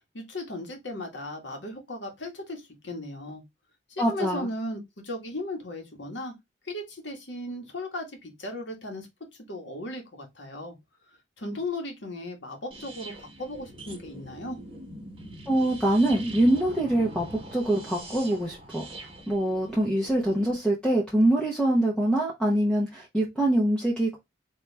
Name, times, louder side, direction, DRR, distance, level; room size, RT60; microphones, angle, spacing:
voice 1, 0.1-3.4 3.9-6.3 6.6-9.1 9.5-10.7 11.4-14.6, left 1 dB, 75° left, 1.6 m, -36 dB
voice 2, 4.0-4.5 15.5-17.3 17.5-18.8 19.3-24.2, right 1 dB, 5° left, 0.9 m, -24 dB
sound 1, 12.7-20.6, right 1 dB, 30° right, 1.3 m, -43 dB
4.6 x 2.9 x 3.4 m
head